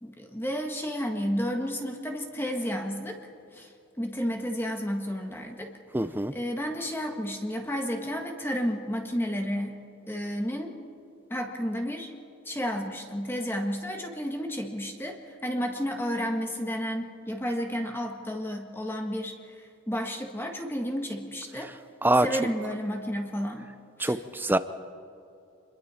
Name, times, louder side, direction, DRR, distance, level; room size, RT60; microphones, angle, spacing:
voice 1, 0.0-3.2 3.5-3.7 4.0-5.7 6.3-10.7 11.3-12.1 12.4-21.7 22.2-23.7 24.0-24.2, equal, 10° left, 3 dB, 1.5 m, -32 dB
voice 2, 5.9-6.4 22.0-22.3 24.0-24.6, right 1 dB, 10° right, 12 dB, 0.6 m, -24 dB
28.0 x 22.0 x 4.3 m, 2.7 s
head